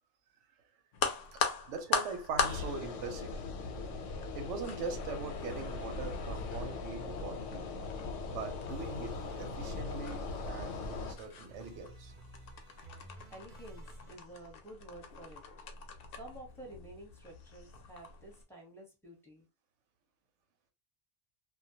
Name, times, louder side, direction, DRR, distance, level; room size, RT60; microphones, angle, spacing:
sound 1, 0.9-18.4, left 5 dB, 60° left, 0.6 m, -41 dB
voice 1, 1.3-3.4 4.3-7.7 8.3-12.1, right 4 dB, 85° right, 0.9 m, -42 dB
sound 2, 2.4-11.2, left 3 dB, 85° left, 0.9 m, -40 dB
sound 3, 3.5-4.6 5.1-7.5 7.8-14.1, right 2 dB, 50° right, 0.6 m, -54 dB
voice 2, 13.3-15.4 16.2-19.4, right 1 dB, ahead, 0.8 m, -51 dB
2.2 x 2.1 x 2.7 m
omnidirectional pair, 1.2 m